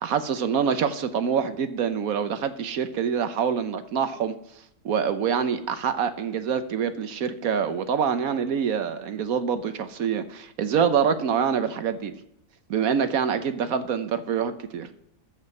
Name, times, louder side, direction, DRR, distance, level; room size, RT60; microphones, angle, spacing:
voice 1, 0.0-4.4 4.8-12.1 12.7-14.9, right 7 dB, 65° right, 11 dB, 1.2 m, -25 dB
13.5 x 5.1 x 7.6 m, 0.78 s
omnidirectional pair, 1.7 m